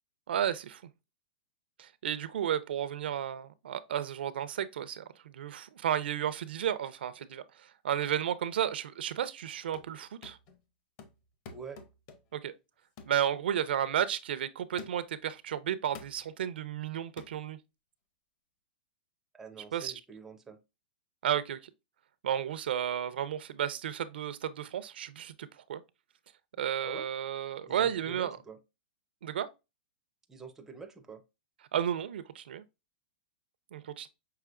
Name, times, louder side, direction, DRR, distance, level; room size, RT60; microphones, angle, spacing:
voice 1, 0.3-0.8 1.8-10.4 12.3-12.5 13.1-17.6 19.7-19.9 21.2-21.6 22.2-25.8 26.6-28.4 29.2-29.5 31.7-32.6 33.7-34.1, right 10 dB, 80° right, 0.5 m, -33 dB
sound 1, 9.5-10.0 10.2-10.6 11.0-12.4 13.0-13.2 13.7-13.9 14.8-15.2 15.9-16.3 17.2-17.4, left 4 dB, 35° left, 0.6 m, -49 dB
voice 2, 19.3-20.6 26.8-27.1 27.7-28.6 30.3-31.2, right 5 dB, 5° right, 0.4 m, -46 dB
5.8 x 2.8 x 2.4 m
supercardioid pair, 165°, 5 cm